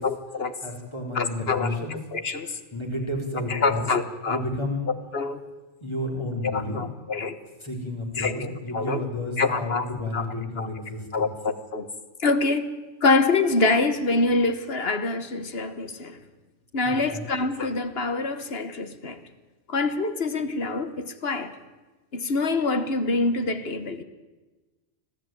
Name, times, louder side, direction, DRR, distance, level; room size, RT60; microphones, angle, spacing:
voice 1, 0.0-0.5 1.1-2.5 3.5-4.4 5.1-5.4 6.5-7.4 8.2-9.0 9.4-9.8 10.1-10.2 10.6-10.7 11.1-11.9 12.2-12.6 13.0-16.2 16.7-19.2 19.7-21.5 22.1-24.0, left 3 dB, 55° left, 10 dB, 1.6 m, -25 dB
voice 2, 0.6-1.9 2.4-3.8 4.3-4.9 5.8-6.8 7.6-11.3 16.8-17.2, left 1 dB, 20° left, 0 dB, 4.3 m, -31 dB
25.0 x 15.5 x 9.3 m, 1.2 s
omnidirectional pair, 1.2 m